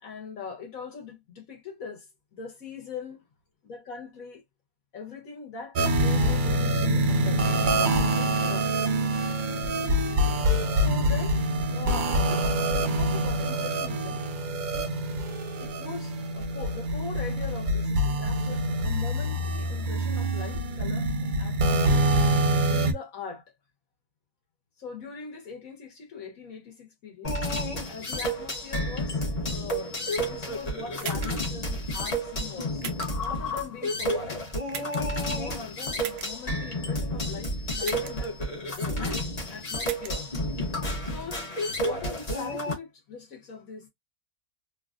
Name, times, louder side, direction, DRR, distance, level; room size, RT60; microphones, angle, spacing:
voice 1, 0.0-3.2 3.6-4.4 4.9-8.7 10.7-11.4 11.7-14.2 14.7-14.9 15.6-22.1 22.7-23.5 24.8-27.4 27.9-29.2 29.5-32.8 33.2-34.4 34.8-38.3 39.0-40.3 41.0-41.5 41.8-43.9, left 5 dB, 65° left, 1.5 m, -41 dB
sound 1, 5.8-22.9, right 1 dB, 55° right, 0.5 m, -25 dB
sound 2, 27.2-42.7, left 1 dB, 30° left, 0.8 m, -31 dB
sound 3, 31.0-31.5 32.8-33.3 34.7-35.2 36.0-36.3 37.8-38.3 39.8-40.1, right 8 dB, 80° right, 1.1 m, -38 dB
3.3 x 2.3 x 2.4 m
omnidirectional pair, 1.6 m